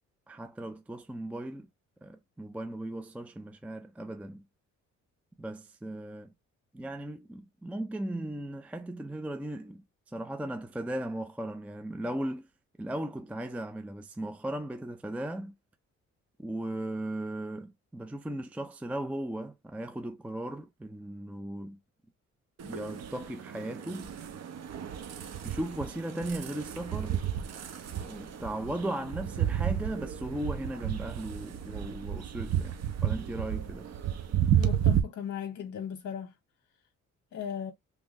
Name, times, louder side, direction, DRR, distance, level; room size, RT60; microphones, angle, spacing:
voice 1, 0.3-1.7 2.0-4.4 5.4-6.3 6.7-9.8 10.1-12.5 12.8-15.5 16.4-21.8 22.6-24.1 25.4-27.2 28.0-32.8 33.0-33.9, right 1 dB, 5° right, 0.4 m, -37 dB
sound 1, 22.6-35.0, right 10 dB, 60° right, 0.8 m, -32 dB
voice 2, 34.5-36.3 37.3-37.7, left 8 dB, 55° left, 0.9 m, -37 dB
3.6 x 3.4 x 2.5 m
cardioid pair, 90°, 30 cm